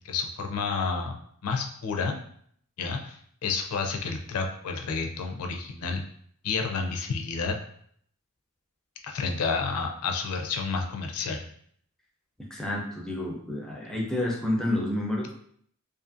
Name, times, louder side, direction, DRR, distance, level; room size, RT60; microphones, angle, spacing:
voice 1, 0.0-1.2 1.4-2.2 2.8-6.0 6.4-7.6 9.0-11.4, left 4 dB, 75° left, 3 dB, 0.4 m, -30 dB
voice 2, 12.5-15.3, left 1 dB, 5° left, -2 dB, 0.4 m, -29 dB
2.5 x 2.5 x 2.5 m, 0.63 s
head